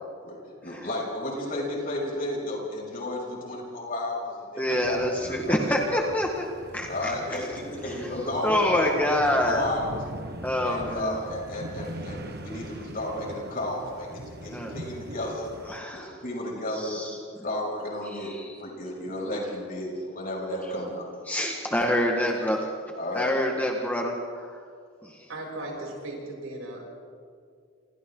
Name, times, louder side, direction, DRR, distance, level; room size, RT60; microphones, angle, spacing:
voice 1, 0.6-5.0 5.3-6.0 6.9-9.9 10.6-15.5 16.2-17.0 17.4-18.3 18.6-21.0 22.9-23.4 25.6-25.8, left 1 dB, 45° left, -2 dB, 6.5 m, -33 dB
voice 2, 4.6-6.5 6.7-7.4 7.8-8.1 8.4-9.6 10.4-11.2 14.5-14.7 15.7-16.2 16.7-17.4 18.0-18.6 21.3-22.7 23.1-24.6 25.0-25.3, left 1 dB, 10° left, 0 dB, 1.5 m, -27 dB
sound 1, 4.8-15.8, right 1 dB, 50° right, 1.5 m, -41 dB
voice 3, 25.3-26.8, right 2 dB, 85° right, -2 dB, 7.3 m, -37 dB
28.0 x 28.0 x 3.8 m, 2.2 s
head